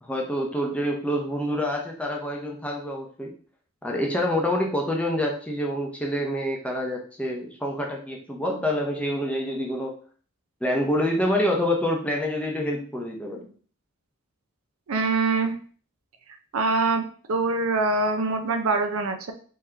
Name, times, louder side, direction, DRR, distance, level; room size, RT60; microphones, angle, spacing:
voice 1, 0.0-3.3 3.8-9.9 10.6-13.5, left 1 dB, 5° left, 0 dB, 0.6 m, -27 dB
voice 2, 14.9-15.5 16.5-19.3, right 3 dB, 70° right, 7 dB, 0.5 m, -24 dB
3.6 x 2.8 x 3.3 m, 0.44 s
head